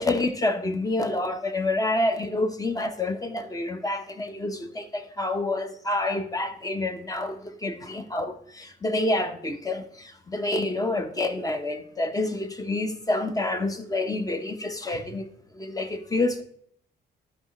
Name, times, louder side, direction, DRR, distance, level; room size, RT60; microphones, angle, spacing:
voice 1, 0.0-16.4, left 2 dB, 20° left, 1.1 m, -28 dB
12.5 x 5.1 x 3.2 m
cardioid pair, 90°, 20 cm